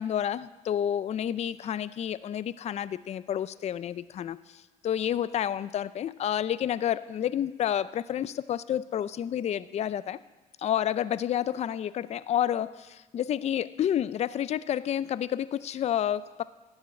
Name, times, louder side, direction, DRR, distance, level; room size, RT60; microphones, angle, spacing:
voice 1, 0.0-4.4 4.8-10.2 10.6-16.4, left 10 dB, 40° left, 17 dB, 0.4 m, -29 dB
13.0 x 7.3 x 9.5 m, 1.3 s
cardioid pair, 110°, 17 cm